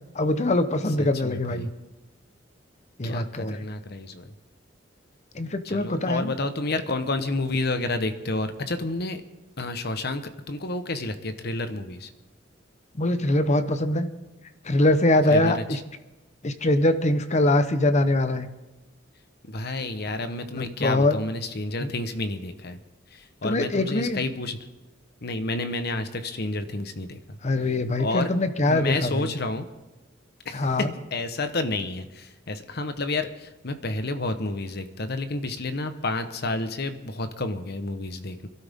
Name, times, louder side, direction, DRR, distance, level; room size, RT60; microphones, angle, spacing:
voice 1, 0.1-1.7 3.0-3.6 5.3-6.3 13.0-14.1 14.6-15.8 16.4-18.5 20.5-21.1 21.8-21.9 23.4-24.2 27.4-29.3 30.5-30.9, left 1 dB, 35° left, 10 dB, 0.9 m, -23 dB
voice 2, 1.0-1.7 3.0-4.3 5.6-9.2 9.6-12.1 15.3-15.8 19.4-22.8 23.1-24.6 25.2-27.4 28.0-28.3 28.7-29.7 30.4-38.5, left 2 dB, 55° left, 9 dB, 1.2 m, -30 dB
26.5 x 12.5 x 3.7 m, 1.1 s
head